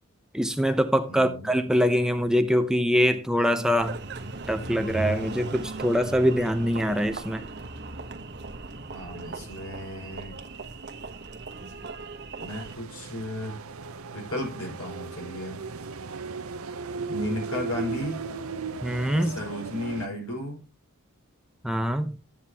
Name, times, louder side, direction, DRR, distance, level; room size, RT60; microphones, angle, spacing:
voice 1, 0.3-4.0 4.5-7.4 18.8-19.4 21.6-22.1, equal, 5° right, 0.8 m, -24 dB
voice 2, 1.1-1.5 8.9-10.4 12.4-13.6 14.1-15.6 17.1-18.3 19.2-20.6, left 1 dB, 80° left, 5.7 m, -34 dB
Engine, 3.8-12.7, right 2 dB, 50° right, 1.1 m, -37 dB
sound 1, 12.5-20.1, right 4 dB, 80° right, 0.7 m, -36 dB
12.5 x 9.0 x 2.9 m
head